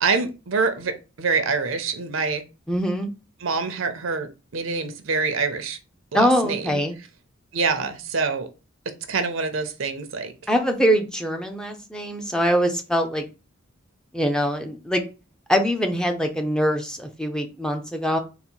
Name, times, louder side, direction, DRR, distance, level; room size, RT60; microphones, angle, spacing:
voice 1, 0.0-2.4 3.4-5.8 6.1-6.8 7.5-8.5 9.1-10.3, right 4 dB, 70° right, 9 dB, 0.7 m, -25 dB
voice 2, 2.7-3.1 6.1-6.9 10.5-13.2 14.1-15.0 15.5-18.2, equal, 5° left, 4 dB, 0.5 m, -23 dB
4.0 x 2.1 x 4.4 m, 0.30 s
head